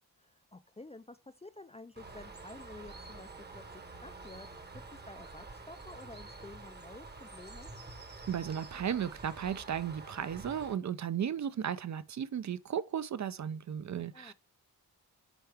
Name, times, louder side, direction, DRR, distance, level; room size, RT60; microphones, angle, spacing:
voice 1, 0.2-4.5 4.9-7.7 14.1-14.3, left 2 dB, 20° left, 0.3 m, -51 dB
Bird, 2.0-10.8, right 3 dB, 25° right, 0.9 m, -48 dB
voice 2, 8.3-14.3, right 8 dB, 50° right, 0.4 m, -35 dB
7.9 x 4.6 x 3.4 m
wide cardioid pair, 145°, 39 cm